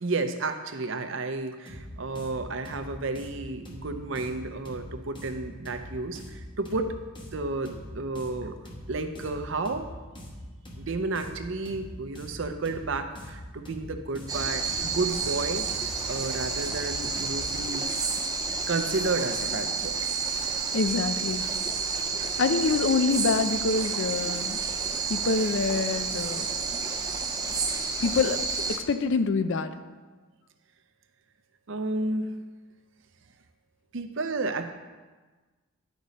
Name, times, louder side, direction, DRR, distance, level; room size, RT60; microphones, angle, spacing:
voice 1, 0.0-7.0 7.3-8.6 8.9-9.9 10.8-15.7 16.1-17.9 18.7-20.0 31.7-32.3 33.9-34.7, right 3 dB, 60° right, 8 dB, 0.6 m, -31 dB
sound 1, 1.7-17.6, equal, 25° left, 1.1 m, -43 dB
sound 2, 14.3-28.8, right 5 dB, 15° right, 0.5 m, -30 dB
voice 2, 20.7-21.4 22.4-24.6 25.1-26.5 28.0-28.4 28.7-29.7, left 4 dB, 60° left, 10 dB, 0.4 m, -26 dB
10.5 x 5.2 x 4.1 m, 1.3 s
head